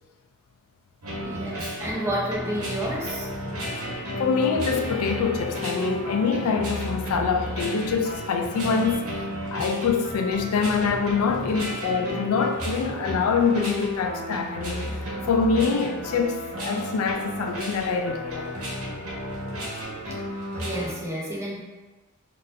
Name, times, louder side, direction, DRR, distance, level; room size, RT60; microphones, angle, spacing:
sound 1, 1.0-20.9, equal, 85° right, 1.1 m, -33 dB
voice 1, 1.2-3.3 20.6-21.6, right 1 dB, 15° right, -4 dB, 0.7 m, -30 dB
voice 2, 4.2-9.3 9.5-14.9 15.3-18.5, left 5 dB, 75° left, 5 dB, 0.4 m, -25 dB
4.1 x 2.5 x 2.6 m, 1.3 s
head